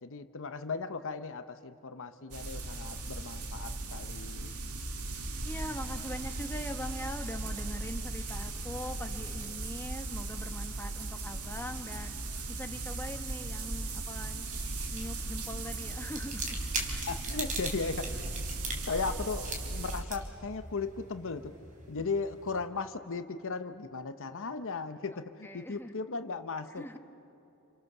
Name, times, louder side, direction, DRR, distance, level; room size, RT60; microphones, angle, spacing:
voice 1, 0.0-4.5 17.1-18.3 18.8-21.5 21.9-27.0, left 4 dB, 60° left, 9 dB, 0.9 m, -37 dB
sound 1, 2.3-20.0, right 2 dB, 75° right, 2.2 m, -37 dB
voice 2, 5.4-12.1 12.5-14.5 14.9-17.0 25.1-25.9 26.8-27.0, left 1 dB, 10° left, 5 dB, 1.4 m, -42 dB
sound 2, 14.2-22.6, right 3 dB, 35° right, 3.5 m, -42 dB
29.0 x 28.0 x 6.8 m, 2.8 s
head